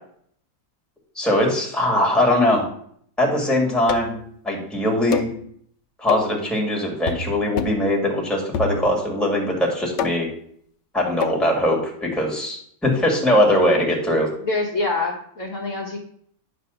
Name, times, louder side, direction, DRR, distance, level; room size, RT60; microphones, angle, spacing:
voice 1, 1.2-2.7 3.2-4.2 4.4-5.3 6.0-10.3 10.9-14.3, left 1 dB, ahead, -1 dB, 1.9 m, -21 dB
sound 1, 3.9-4.3 5.1-5.4 6.1-6.4 7.1-7.3 7.6-7.9 8.5-9.1 10.0-10.4 11.2-11.4, left 6 dB, 80° left, 1.3 m, -27 dB
voice 2, 14.4-16.0, left 3 dB, 50° left, -1 dB, 1.2 m, -25 dB
9.7 x 3.4 x 6.8 m, 0.64 s
omnidirectional pair, 1.9 m